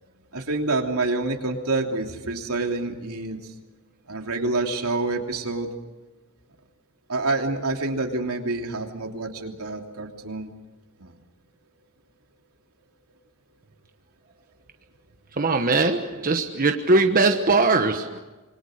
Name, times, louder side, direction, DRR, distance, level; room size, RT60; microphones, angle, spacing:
voice 1, 0.3-3.4 4.1-5.7 7.1-10.5 11.0-11.1, right 2 dB, 80° right, 3.1 m, -27 dB
voice 2, 15.4-18.2, right 3 dB, 40° right, 1.2 m, -20 dB
26.5 x 24.0 x 6.5 m
head